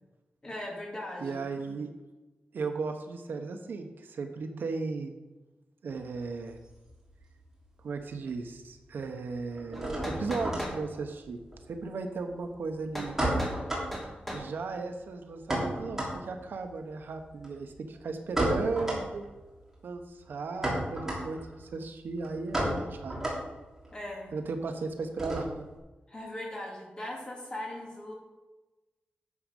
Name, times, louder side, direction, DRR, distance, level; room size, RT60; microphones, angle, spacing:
voice 1, 0.4-1.4 23.9-24.3 26.1-28.1, left 1 dB, 25° left, -1 dB, 2.5 m, -39 dB
voice 2, 1.2-1.9 2.5-5.1 5.8-6.6 7.8-11.4 11.7-13.2 14.3-19.2 19.8-23.2 24.3-25.5, right 4 dB, 75° right, 6 dB, 1.0 m, -36 dB
sound 1, 6.0-7.5 7.8-8.5 8.7-25.8, right 1 dB, 10° right, 3.0 m, -34 dB
sound 2, 9.7-10.8 12.9-13.1 13.4-13.6 13.9-14.5, equal, 5° left, 2.2 m, -37 dB
11.0 x 7.4 x 5.3 m, 1.1 s
wide cardioid pair, 170°, 3 cm